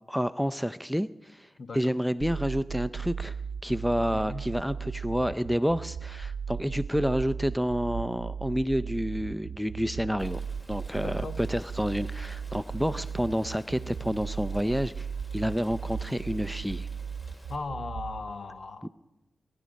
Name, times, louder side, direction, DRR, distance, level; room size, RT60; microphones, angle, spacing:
voice 1, 0.1-1.5 1.7-3.4 3.6-10.4 10.7-15.1 15.3-16.9 18.8-18.9, equal, ahead, 0.5 m, -29 dB
voice 2, 1.6-2.0 4.1-4.5 10.9-11.4 17.5-18.9, left 3 dB, 60° left, 1.2 m, -38 dB
sound 1, 2.2-18.2, right 6 dB, 80° right, 0.7 m, -36 dB
Rain, 10.2-17.6, equal, 20° left, 3.3 m, -52 dB
24.0 x 11.0 x 5.2 m
cardioid pair, 50°, 0 cm